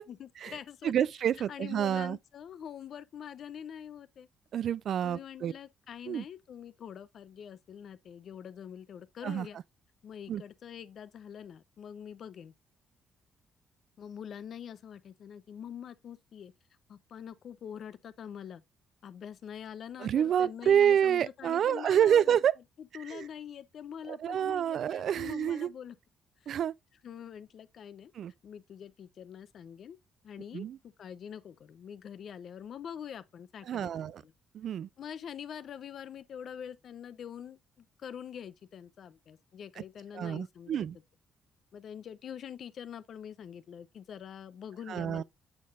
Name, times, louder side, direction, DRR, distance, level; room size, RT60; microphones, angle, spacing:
voice 1, 0.1-0.9 1.5-4.3 5.0-9.6 10.0-12.5 14.0-16.5 16.9-18.6 19.0-22.4 22.8-26.0 26.4-26.6 27.0-28.1 28.4-30.0 30.2-34.3 35.0-40.9 41.7-45.2, left 8 dB, 60° left, 0.6 m, -45 dB
voice 2, 0.8-2.2 4.5-5.5 6.1-6.2 9.2-9.5 10.3-10.4 20.0-22.5 23.1-23.2 24.1-25.7 26.5-26.7 28.2-28.3 30.5-30.8 33.7-34.2 34.5-34.9 40.1-41.0 44.9-45.2, right 9 dB, 65° right, 0.3 m, -28 dB
7.3 x 6.6 x 2.4 m
cardioid pair, 90°, 0 cm